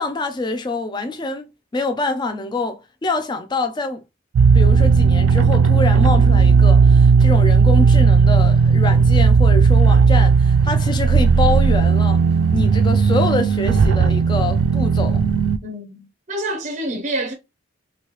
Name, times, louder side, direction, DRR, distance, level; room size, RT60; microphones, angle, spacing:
voice 1, 0.0-4.0 4.5-12.2 12.5-15.2, left 2 dB, 20° left, 0.3 m, -25 dB
sound 1, 4.3-15.6, right 5 dB, 85° right, 0.3 m, -14 dB
voice 2, 15.6-17.3, right 1 dB, 35° right, 0.6 m, -27 dB
3.1 x 2.7 x 2.9 m
head